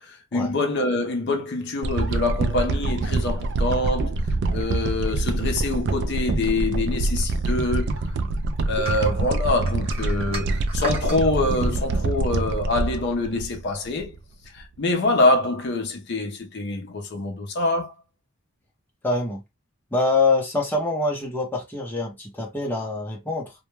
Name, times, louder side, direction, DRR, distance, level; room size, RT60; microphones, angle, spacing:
voice 1, 0.0-4.1 4.5-8.0 8.7-14.1 14.5-17.9, left 2 dB, 50° left, 0.5 m, -25 dB
sound 1, 1.8-14.2 14.6-14.7, right 2 dB, 50° right, 0.3 m, -25 dB
sound 2, 8.8-11.2, equal, 25° right, 0.7 m, -34 dB
voice 2, 19.0-19.4 19.9-23.5, left 3 dB, 10° left, 0.6 m, -25 dB
2.2 x 2.1 x 3.0 m
head